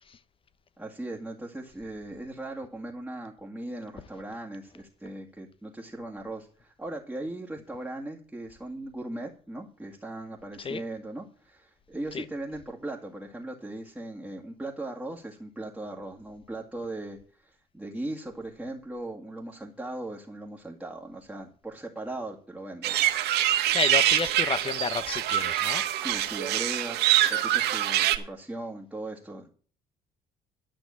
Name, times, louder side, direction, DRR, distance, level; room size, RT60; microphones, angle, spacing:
voice 1, 0.8-23.0 25.9-29.5, right 2 dB, 5° right, 1.9 m, -38 dB
sound 1, 22.8-28.2, right 13 dB, 75° right, 1.5 m, -25 dB
voice 2, 23.7-25.9, left 6 dB, 30° left, 0.9 m, -31 dB
12.0 x 6.1 x 8.6 m
cardioid pair, 110°, 17 cm